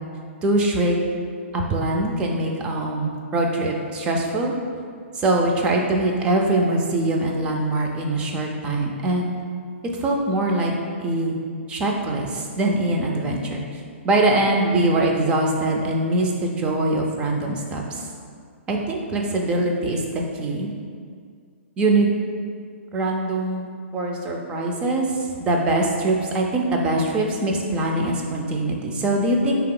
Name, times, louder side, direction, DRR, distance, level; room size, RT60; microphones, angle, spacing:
voice 1, 0.4-1.0 1.5-4.5 5.1-9.3 9.9-10.7 11.0-11.3 11.7-13.6 14.0-18.1 18.7-20.0 20.3-20.7 21.8-22.1 22.9-23.7 23.9-29.6, right 2 dB, 15° right, 0 dB, 0.3 m, -22 dB
3.9 x 2.8 x 3.7 m, 2.1 s
hypercardioid pair, 160°, 7 cm